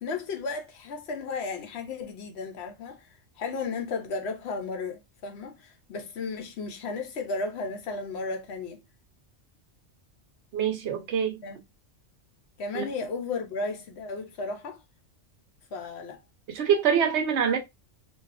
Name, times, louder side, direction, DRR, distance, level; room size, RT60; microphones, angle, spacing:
voice 1, 0.0-3.1 3.4-8.8 11.4-11.6 12.6-14.8 15.7-16.2, left 4 dB, 70° left, 0.9 m, -34 dB
voice 2, 10.5-11.4 12.7-12.8 16.5-17.6, right 7 dB, 80° right, 0.9 m, -25 dB
2.5 x 2.3 x 2.4 m
omnidirectional pair, 1.2 m